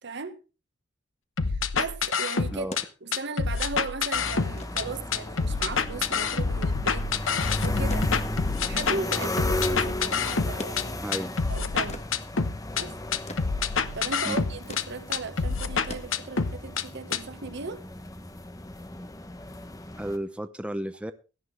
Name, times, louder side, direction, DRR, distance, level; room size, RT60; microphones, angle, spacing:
voice 1, 0.0-0.4 1.4-2.7 3.0-7.1 7.6-8.1 8.7-11.0 11.5-12.0 12.8-12.9 13.9-17.9, right 3 dB, 60° right, 1.4 m, -37 dB
sound 1, 1.4-2.8 3.1-4.8 5.1-10.8 11.1-12.8 13.1-14.8 15.1-16.8 17.1-17.2, left 5 dB, 80° left, 1.0 m, -27 dB
sound 2, 2.7-18.0 19.2-19.3, left 2 dB, 35° left, 1.6 m, -45 dB
sound 3, 4.1-20.2, left 1 dB, 20° left, 1.1 m, -35 dB
voice 2, 11.0-11.3 14.2-14.4 20.0-21.1, right 1 dB, 5° right, 0.6 m, -33 dB
17.0 x 11.5 x 3.3 m
head